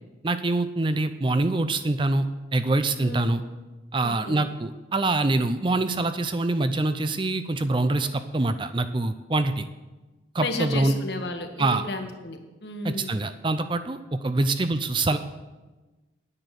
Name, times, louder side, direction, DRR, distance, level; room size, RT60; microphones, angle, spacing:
voice 1, 0.2-2.3 2.5-3.4 3.9-9.7 10.3-11.0 11.6-11.8 12.8-15.2, right 2 dB, 25° right, 10 dB, 0.5 m, -25 dB
voice 2, 3.0-3.3 4.0-4.4 10.4-13.2, left 2 dB, 60° left, 5 dB, 1.5 m, -33 dB
10.0 x 9.6 x 6.9 m, 1.2 s
head